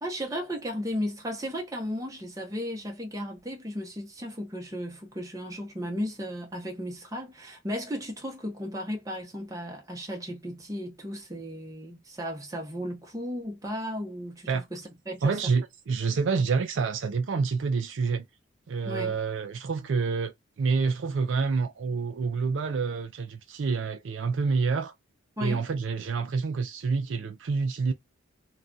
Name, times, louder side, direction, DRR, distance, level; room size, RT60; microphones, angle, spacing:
voice 1, 0.0-15.5 18.8-19.2 25.4-25.6, equal, 15° right, 0.8 m, -35 dB
voice 2, 15.2-18.3 18.7-20.3 20.6-24.9 25.4-27.9, right 4 dB, 65° right, 0.4 m, -27 dB
2.4 x 2.2 x 3.8 m
head